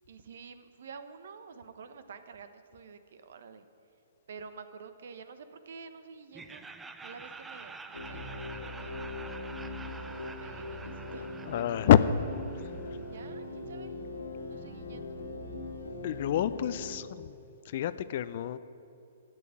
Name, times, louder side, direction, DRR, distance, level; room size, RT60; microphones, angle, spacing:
voice 1, 0.1-3.6 4.3-6.7 7.0-9.0 10.2-11.5 12.9-13.9 14.4-15.2, right 5 dB, 60° right, 10 dB, 1.0 m, -49 dB
Laughter, 6.3-13.3, right 4 dB, 10° right, 0.6 m, -47 dB
sound 1, 7.9-17.0, left 2 dB, 80° left, 2.0 m, -40 dB
voice 2, 11.5-12.0 16.0-17.4 17.7-18.6, left 11 dB, 50° left, 14 dB, 0.5 m, -26 dB
13.0 x 8.2 x 8.7 m, 2.6 s
figure-of-eight pair, 120°, 0 cm